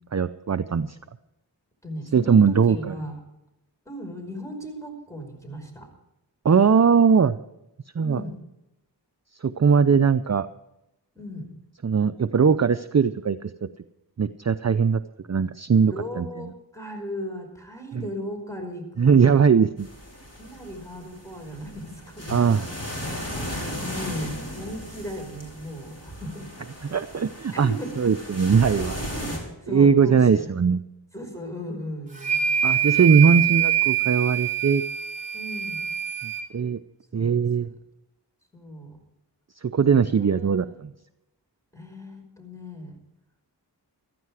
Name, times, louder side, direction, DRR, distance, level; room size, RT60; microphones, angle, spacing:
voice 1, 0.1-1.0 2.1-2.9 6.4-7.4 8.0-8.2 9.4-10.5 11.8-13.7 14.2-15.0 15.3-16.3 19.0-19.9 22.3-22.6 26.9-27.7 28.0-29.0 29.7-30.8 32.6-34.8 36.2-36.8 37.1-37.7 39.6-40.9, right 6 dB, 40° right, 11 dB, 0.5 m, -20 dB
voice 2, 1.8-3.2 3.9-5.9 8.0-8.4 11.2-11.5 15.9-19.6 20.4-22.5 23.8-26.5 26.7-27.0 27.5-28.1 28.7-30.7 31.1-32.5 35.3-35.8 37.1-37.7 38.5-39.0 40.0-40.7 41.7-43.0, equal, 5° left, 3 dB, 5.3 m, -37 dB
sound 1, 19.8-29.4, equal, 35° left, 5.2 m, -36 dB
sound 2, 32.2-36.4, right 10 dB, 20° right, 3.3 m, -24 dB
15.5 x 13.5 x 4.9 m, 0.88 s
wide cardioid pair, 50°, 43 cm